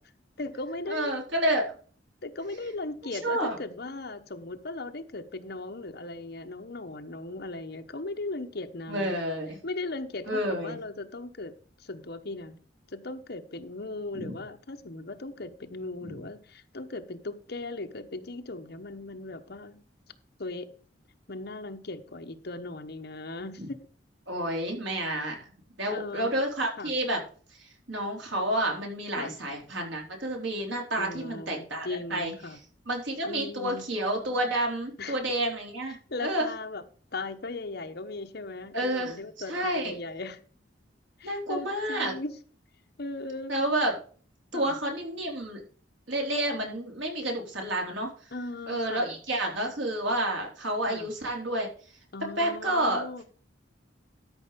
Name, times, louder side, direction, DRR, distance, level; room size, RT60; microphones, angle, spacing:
voice 1, 0.4-1.1 2.2-9.2 9.6-11.5 11.8-12.6 12.9-19.8 20.4-20.7 21.3-23.8 25.9-26.4 26.8-26.9 29.2-29.4 31.0-32.6 33.2-33.9 35.0-35.2 36.1-36.8 37.1-40.4 41.2-42.4 43.0-43.6 44.5-44.8 48.3-49.2 50.9-51.1 52.1-53.2, left 2 dB, 55° left, 1.1 m, -38 dB
voice 2, 0.9-1.7 3.2-3.6 8.9-9.6 10.3-10.8 14.1-14.3 16.0-16.1 24.3-25.4 25.8-27.2 27.6-32.3 32.9-36.5 38.7-39.2 39.5-40.0 41.2-42.1 43.5-43.9 44.5-45.6 46.1-48.1 48.7-51.7 52.4-53.2, right 1 dB, 85° right, 3.9 m, -29 dB
13.0 x 5.6 x 5.2 m
head